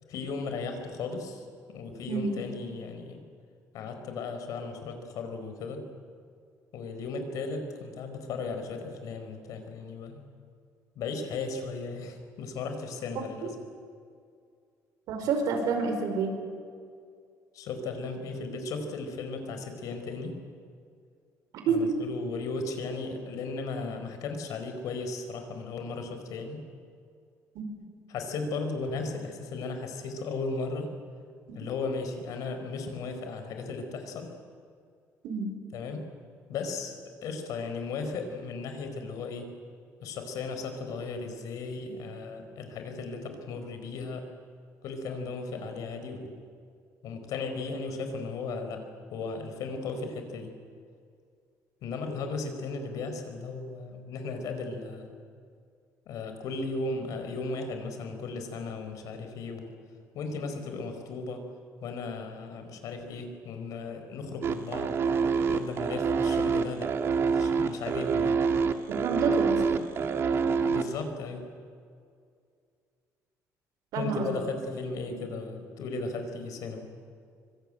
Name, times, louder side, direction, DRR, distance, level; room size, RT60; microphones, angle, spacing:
voice 1, 0.1-3.2 3.7-5.8 6.7-10.3 10.9-13.5 17.5-20.4 21.7-26.6 28.1-30.9 31.5-34.3 35.7-36.1 36.5-39.5 40.0-44.3 44.8-46.4 47.0-50.6 51.8-55.1 56.1-59.8 60.1-61.5 61.8-65.0 65.5-66.9 67.3-68.4 70.6-71.4 73.9-76.9, left 3 dB, 70° left, 6 dB, 4.8 m, -36 dB
voice 2, 2.1-2.4 15.1-16.3 21.6-21.9 27.5-27.7 35.2-35.6 69.0-69.8 73.9-74.3, right 4 dB, 80° right, 5 dB, 5.1 m, -28 dB
sound 1, 64.4-71.0, right 5 dB, 45° right, 1.6 m, -26 dB
25.0 x 25.0 x 9.1 m, 2.2 s
cardioid pair, 170°, 6 cm